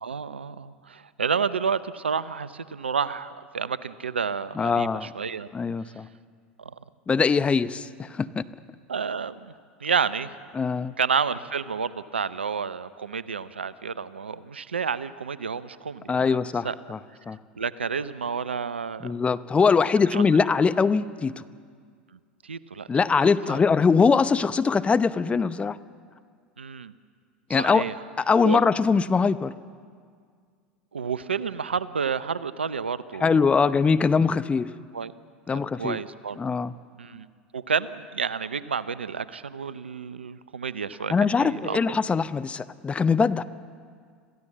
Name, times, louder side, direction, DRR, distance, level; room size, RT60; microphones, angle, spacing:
voice 1, 0.0-5.5 6.6-6.7 8.9-9.5 9.8-10.3 11.0-16.2 16.6-16.8 17.6-19.1 20.1-20.2 22.4-23.0 23.5-23.6 26.6-26.9 27.6-27.9 28.4-28.6 30.9-33.8 34.9-35.1 35.5-36.4 37.0-37.3 37.5-41.1 41.4-41.8, right 6 dB, 90° right, 16 dB, 0.6 m, -30 dB
voice 2, 4.6-5.1 5.5-6.1 7.1-8.4 10.5-10.9 16.1-17.0 17.3-17.4 19.0-21.4 22.9-25.8 27.5-27.8 28.2-29.5 33.2-34.7 35.5-36.0 36.4-36.7 41.1-43.4, left 5 dB, 20° left, 14 dB, 0.7 m, -22 dB
26.5 x 15.5 x 7.4 m, 2.1 s
hypercardioid pair, 80°, 6 cm